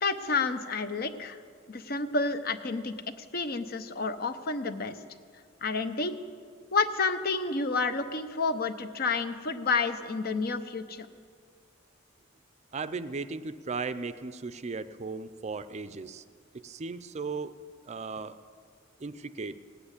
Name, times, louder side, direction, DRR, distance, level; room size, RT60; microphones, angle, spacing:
voice 1, 0.0-1.4 1.7-5.0 5.6-6.1 6.7-11.1, left 4 dB, 50° left, 10 dB, 0.8 m, -30 dB
voice 2, 12.7-16.2 16.6-17.5 17.8-18.4 19.0-19.6, right 4 dB, 35° right, 12 dB, 0.5 m, -36 dB
18.0 x 8.7 x 8.2 m, 2.1 s
head